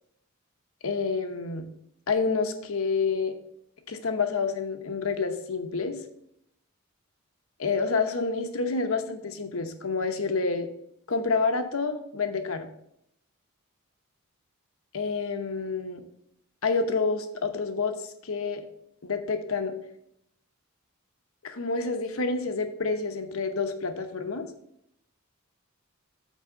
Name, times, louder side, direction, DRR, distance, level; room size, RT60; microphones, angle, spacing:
voice 1, 0.8-1.7 2.1-3.3 3.9-6.0 7.6-10.7 11.1-12.7 14.9-16.0 16.6-17.9 18.2-18.6 19.0-19.8 21.4-24.5, left 4 dB, 70° left, 7 dB, 0.9 m, -28 dB
6.3 x 4.8 x 6.8 m, 0.75 s
head